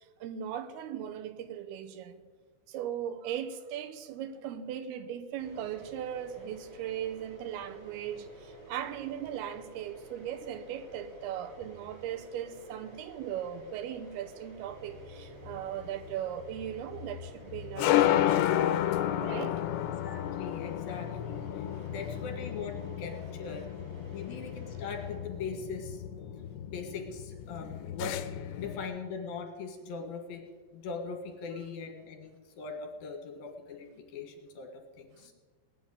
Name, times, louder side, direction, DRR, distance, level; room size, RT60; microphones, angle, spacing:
voice 1, 0.2-2.1 2.7-18.6 19.2-19.6, right 10 dB, 75° right, 2.7 m, -38 dB
sound 1, 5.4-25.2, right 2 dB, 35° right, 5.1 m, -51 dB
sound 2, 14.8-28.9, left 12 dB, 80° left, 2.8 m, -32 dB
voice 2, 20.0-23.7 24.1-26.0 26.7-28.2 28.5-34.7 35.0-35.3, left 5 dB, 65° left, 3.4 m, -41 dB
19.0 x 6.4 x 9.7 m
omnidirectional pair, 4.9 m